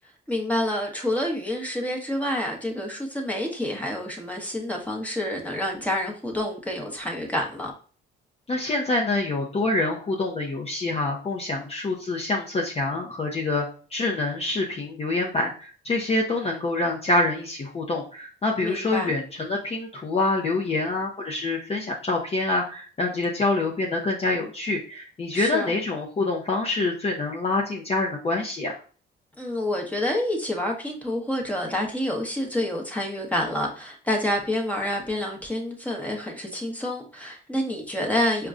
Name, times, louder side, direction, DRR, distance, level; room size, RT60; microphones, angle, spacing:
voice 1, 0.3-7.7 18.6-19.1 25.3-25.7 29.4-38.5, left 1 dB, 5° left, 1.0 m, -28 dB
voice 2, 8.5-13.7 13.9-28.8, left 2 dB, 30° left, 0.6 m, -26 dB
5.1 x 2.2 x 2.4 m
cardioid pair, 90°, 20 cm